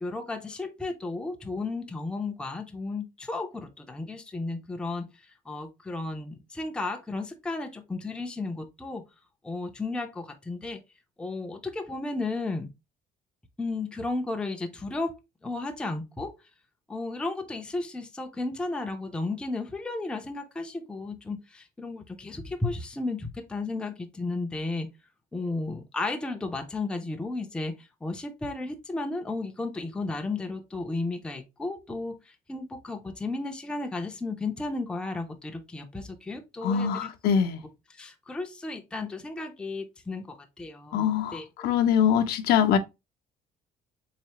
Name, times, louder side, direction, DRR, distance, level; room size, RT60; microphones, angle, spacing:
voice 1, 0.0-5.0 5.5-9.1 9.4-10.8 11.2-12.7 13.6-15.1 15.4-16.4 16.9-24.9 25.3-32.2 32.5-37.1 37.4-37.5 37.9-41.5, left 3 dB, 5° left, 0.4 m, -34 dB
voice 2, 36.6-37.6 40.9-42.8, left 8 dB, 70° left, 0.6 m, -23 dB
3.8 x 3.2 x 2.8 m
cardioid pair, 160°, 16 cm